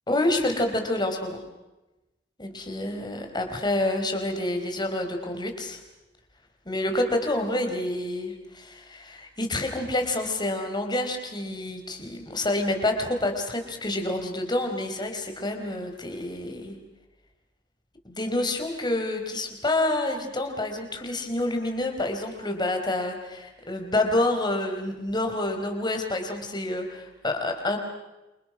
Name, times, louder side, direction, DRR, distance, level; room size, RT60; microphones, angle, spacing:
voice 1, 0.1-1.4 2.4-5.8 6.7-16.8 18.0-27.8, left 1 dB, 25° left, 4 dB, 4.5 m, -28 dB
28.5 x 28.0 x 6.3 m, 1.0 s
head